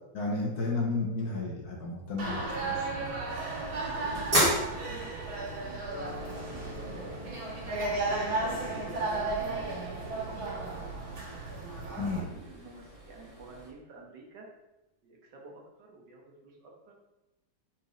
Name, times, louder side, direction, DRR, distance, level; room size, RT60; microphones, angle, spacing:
voice 1, 0.1-3.1 12.0-12.2, left 3 dB, 55° left, -1 dB, 1.4 m, -33 dB
sound 1, 2.2-12.2, right 2 dB, 90° right, 2.4 m, -34 dB
sound 2, 2.9-13.7, equal, 20° right, 1.4 m, -37 dB
voice 2, 3.6-6.1 6.4-7.1 7.9-10.9 11.9-14.5 15.0-16.9, right 3 dB, 65° right, 0 dB, 1.6 m, -49 dB
Mallet percussion, 5.9-11.4, left 6 dB, 75° left, 0.5 m, -51 dB
4.5 x 4.2 x 5.0 m, 0.99 s
omnidirectional pair, 2.1 m